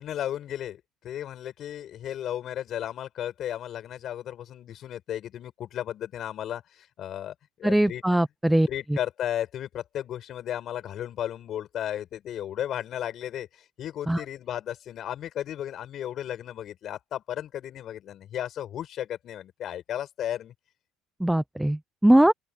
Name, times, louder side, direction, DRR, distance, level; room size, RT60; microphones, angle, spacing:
voice 1, 0.0-8.0 8.7-20.5, left 11 dB, 55° left, 7.0 m, -34 dB
voice 2, 7.6-8.7 14.1-14.2 21.2-22.3, right 1 dB, 5° right, 0.6 m, -21 dB
open air
supercardioid pair, 90°, 0 cm